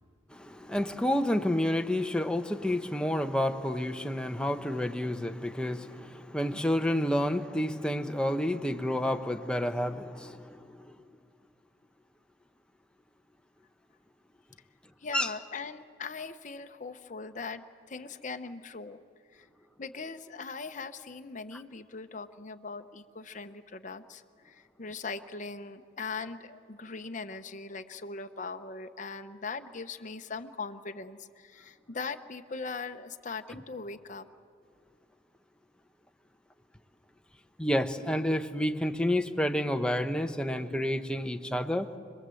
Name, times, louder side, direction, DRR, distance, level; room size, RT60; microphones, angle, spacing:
voice 1, 0.3-10.9 15.1-15.3 37.6-41.9, left 1 dB, 5° left, 0.9 m, -29 dB
voice 2, 15.0-19.0 19.3-19.5 19.8-34.3, left 4 dB, 40° left, 0.9 m, -40 dB
26.0 x 21.0 x 7.8 m
head